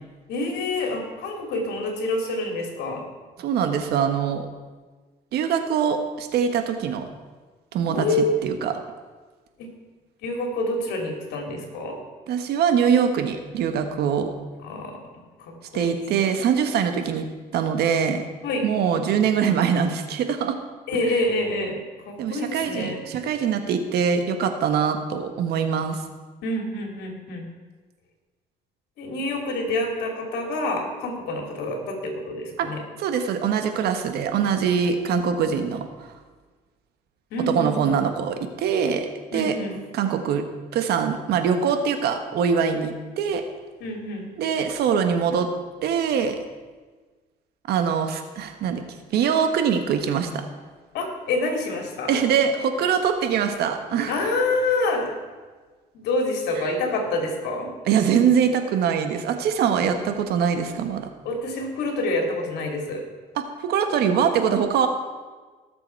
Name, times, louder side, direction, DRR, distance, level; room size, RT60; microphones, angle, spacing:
voice 1, 0.3-3.0 7.9-8.4 10.2-12.0 14.6-14.9 15.4-16.2 18.4-18.6 20.9-21.8 22.1-23.0 26.4-27.5 29.0-32.8 37.3-37.9 39.3-39.8 43.8-44.3 50.9-52.2 54.1-55.1 55.9-57.7 61.2-63.0, left 2 dB, 80° left, 2 dB, 2.9 m, -27 dB
voice 2, 3.4-4.5 5.3-7.0 7.7-8.7 12.3-14.3 15.7-17.3 17.5-18.2 18.6-20.5 22.2-26.0 32.6-32.7 33.0-36.1 37.5-39.6 39.9-40.4 40.7-43.4 44.4-45.5 45.8-46.4 47.7-48.8 49.1-50.4 52.1-54.3 57.8-61.1 63.3-64.9, right 7 dB, 70° right, 7 dB, 1.4 m, -23 dB
18.5 x 7.0 x 4.6 m, 1.4 s
cardioid pair, 110°, 17 cm